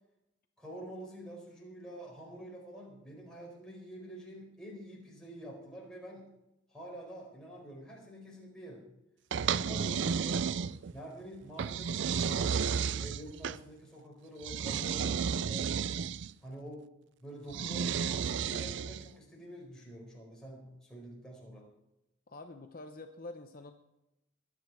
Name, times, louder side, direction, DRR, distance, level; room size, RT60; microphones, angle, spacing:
voice 1, 0.6-6.3 6.7-8.8 9.6-10.4 10.9-15.8 16.4-16.9 17.2-21.7, right 1 dB, 5° left, -3 dB, 4.5 m, -47 dB
sound 1, 9.3-11.0 11.6-13.6 14.4-16.3 17.5-19.1, right 7 dB, 60° right, 0.4 m, -32 dB
voice 2, 9.6-10.8 22.3-23.7, left 2 dB, 45° left, 5 dB, 0.8 m, -48 dB
22.0 x 9.0 x 4.7 m, 0.90 s
head